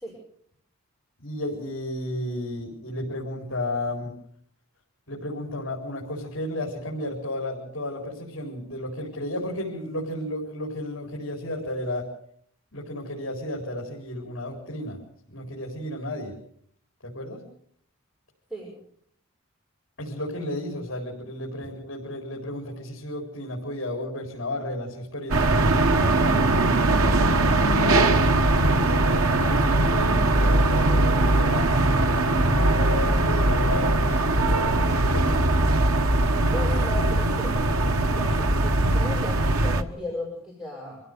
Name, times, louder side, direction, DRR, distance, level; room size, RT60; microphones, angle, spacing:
voice 1, 1.2-4.2 5.1-12.1 12.7-15.0 15.3-16.4 17.0-17.4 20.0-26.0 27.3-31.8 32.4-35.5, left 1 dB, 60° left, -1 dB, 4.4 m, -33 dB
sound 1, 25.3-39.8, right 2 dB, 85° right, 1.4 m, -21 dB
voice 2, 36.5-37.6 38.1-41.0, left 2 dB, 5° right, -3 dB, 5.4 m, -35 dB
26.0 x 16.0 x 6.8 m, 0.65 s
head